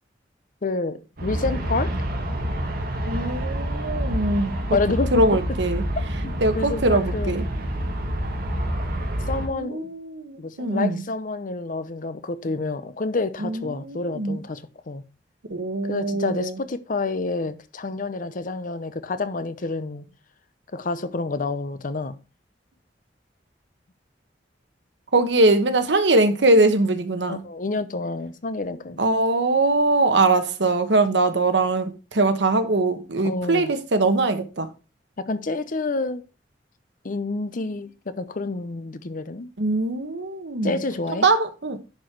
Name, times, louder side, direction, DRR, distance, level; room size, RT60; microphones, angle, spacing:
voice 1, 0.6-1.9 4.7-5.2 6.2-7.3 9.3-9.9 10.4-15.0 15.8-20.0 20.7-22.2 27.3-29.0 33.2-33.7 35.2-36.2 37.0-39.5 40.6-41.3, left 3 dB, 50° left, 0.7 m, -28 dB
Aircraft, 1.2-9.5, equal, 55° right, 2.0 m, -27 dB
voice 2, 3.0-4.6 5.1-5.8 6.4-7.5 9.5-11.0 13.4-14.4 15.5-16.6 25.1-27.4 29.0-34.7 39.6-40.8 41.2-41.8, right 2 dB, 75° right, 1.2 m, -22 dB
10.5 x 4.6 x 4.6 m
head